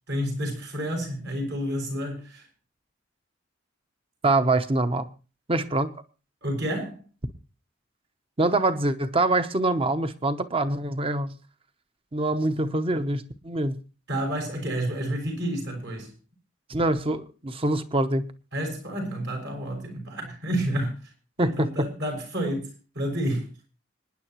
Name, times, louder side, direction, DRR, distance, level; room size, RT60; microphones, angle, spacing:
voice 1, 0.1-2.5 6.4-7.0 14.1-16.1 18.5-21.0 21.4-23.5, equal, 65° right, 6.4 m, -30 dB
voice 2, 4.2-5.1 5.5-5.9 8.4-11.3 12.1-13.8 16.7-18.3 21.4-21.9, right 2 dB, 30° right, 0.9 m, -24 dB
26.0 x 10.0 x 3.0 m
head